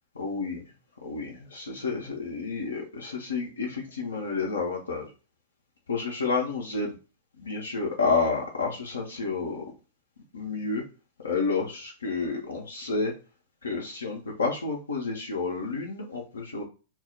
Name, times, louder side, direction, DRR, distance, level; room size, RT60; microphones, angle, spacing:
voice 1, 0.2-0.6 1.0-5.1 5.9-7.0 7.4-9.7 10.3-10.8 11.2-13.1 13.6-16.6, left 4 dB, 70° left, -1 dB, 0.4 m, -30 dB
2.2 x 2.0 x 3.6 m, 0.33 s
figure-of-eight pair, 100°, 0 cm